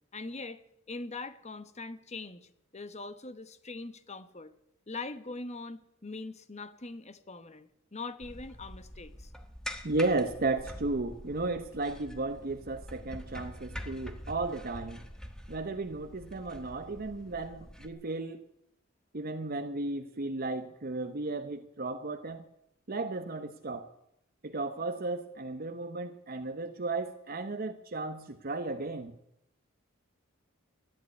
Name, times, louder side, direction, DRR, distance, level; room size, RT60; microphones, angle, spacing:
voice 1, 0.1-0.6 0.9-4.5 4.9-9.3, left 3 dB, 30° left, 12 dB, 1.1 m, -42 dB
sound 1, 8.2-17.9, equal, 5° left, 1.3 m, -45 dB
voice 2, 9.8-15.0 15.5-18.4 19.1-22.4 22.9-23.9 24.4-29.2, right 2 dB, 45° right, 8 dB, 0.9 m, -34 dB
14.0 x 10.5 x 9.4 m, 0.75 s
head